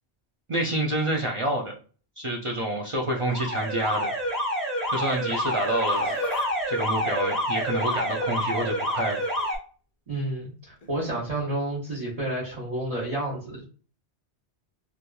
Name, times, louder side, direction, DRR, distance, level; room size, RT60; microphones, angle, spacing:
voice 1, 0.5-1.7 2.2-4.1 4.9-6.2 6.7-9.2, right 1 dB, 55° right, -1 dB, 0.3 m, -28 dB
Alarm, 3.1-9.6, equal, 20° left, 1.0 m, -28 dB
Laughter, 5.7-6.5 6.8-8.2 9.1-9.5 10.8-10.9 11.9-12.0, left 6 dB, 60° left, 0.3 m, -41 dB
voice 2, 10.1-13.6, right 1 dB, 35° right, -7 dB, 0.9 m, -30 dB
2.8 x 2.4 x 2.2 m, 0.39 s
omnidirectional pair, 1.1 m